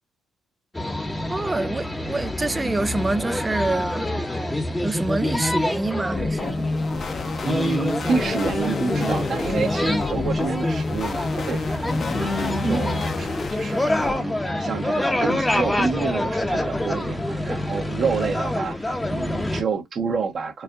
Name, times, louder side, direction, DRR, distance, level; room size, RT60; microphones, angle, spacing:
sound 1, 0.7-19.6, left 1 dB, 10° left, 0.9 m, -26 dB
voice 1, 1.3-4.1 4.8-6.7 12.6-12.9, right 2 dB, 20° right, 0.4 m, -26 dB
sound 2, 6.1-14.1, left 3 dB, 45° left, 0.9 m, -29 dB
voice 2, 7.4-14.3 14.6-20.6, right 5 dB, 55° right, 1.3 m, -28 dB
4.6 x 2.4 x 2.5 m
cardioid pair, 90°, 0 cm